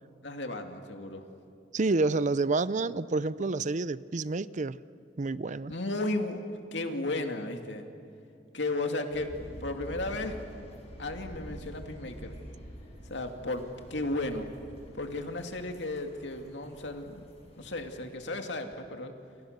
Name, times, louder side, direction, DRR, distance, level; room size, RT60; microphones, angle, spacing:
voice 1, 0.2-1.2 5.7-6.4 6.7-7.9 8.5-9.3 9.6-10.4 11.0-12.4 13.1-13.6 13.9-14.5 14.9-17.2 17.6-19.1, left 2 dB, 70° left, 5 dB, 2.4 m, -34 dB
voice 2, 1.7-4.8 5.2-5.7, right 3 dB, 40° right, 17 dB, 0.5 m, -28 dB
sound 1, 9.1-18.1, right 1 dB, 35° left, 7.5 m, -47 dB
29.5 x 29.5 x 6.7 m, 2.7 s
head